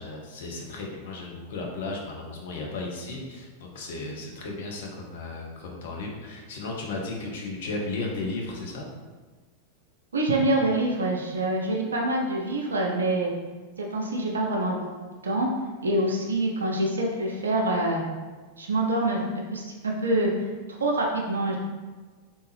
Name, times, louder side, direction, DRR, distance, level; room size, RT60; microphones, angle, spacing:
voice 1, 0.0-8.9, left 3 dB, 55° left, -1 dB, 0.7 m, -35 dB
voice 2, 10.1-13.3 13.8-15.5 15.8-18.0 18.6-21.6, right 1 dB, 70° right, 0 dB, 0.5 m, -26 dB
3.4 x 2.7 x 3.2 m, 1.3 s
figure-of-eight pair, 90°, 0 cm